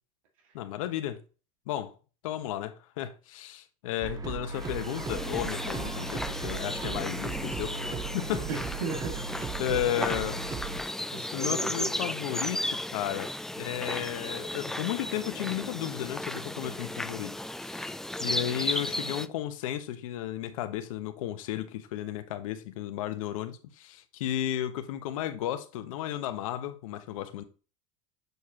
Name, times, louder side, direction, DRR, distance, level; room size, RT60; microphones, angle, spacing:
voice 1, 0.5-1.2 1.7-1.9 2.2-7.7 8.0-8.5 9.6-10.4 11.3-13.3 13.6-17.3 17.6-17.9 18.2-27.4, left 12 dB, 85° left, 1.1 m, -34 dB
sound 1, 4.0-10.8, right 4 dB, 20° right, 0.9 m, -37 dB
sound 2, 4.5-19.3, left 1 dB, ahead, 0.4 m, -35 dB
voice 2, 8.5-9.8 11.1-12.0, right 4 dB, 85° right, 1.9 m, -37 dB
7.9 x 4.9 x 2.9 m
supercardioid pair, 115°, 17 cm